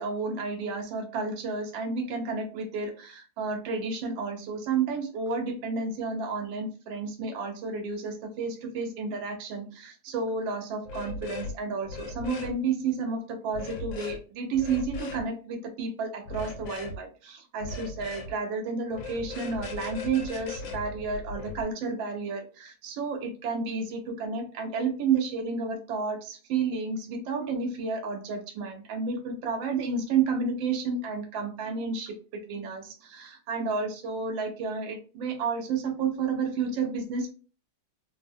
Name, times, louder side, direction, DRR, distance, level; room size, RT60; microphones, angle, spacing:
voice 1, 0.0-37.3, right 4 dB, 85° right, 4 dB, 1.4 m, -31 dB
sound 1, 10.9-11.5 11.8-12.5 13.5-14.2 14.6-15.2 16.3-17.0 17.6-18.3 18.9-21.6, left 4 dB, 85° left, 1.3 m, -38 dB
3.6 x 2.0 x 2.4 m, 0.36 s
omnidirectional pair, 2.0 m